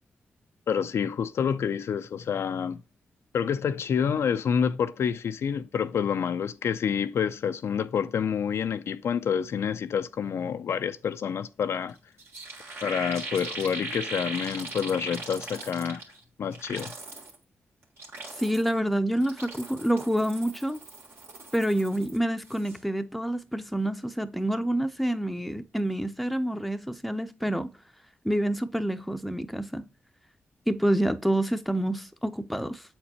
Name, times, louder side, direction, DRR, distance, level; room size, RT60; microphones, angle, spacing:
voice 1, 0.7-2.8 3.3-12.0 12.8-16.0 16.4-16.9, left 7 dB, 70° left, 0.4 m, -28 dB
sound 1, 11.9-12.0 12.2-16.2 16.5-17.3 17.8-18.8 19.2-22.2 22.4-22.8, right 2 dB, 65° right, 1.7 m, -39 dB
voice 2, 18.4-20.8 21.5-27.7 28.2-29.9 30.7-32.8, right 1 dB, ahead, 0.6 m, -27 dB
7.5 x 4.3 x 2.9 m
cardioid pair, 65°, 5 cm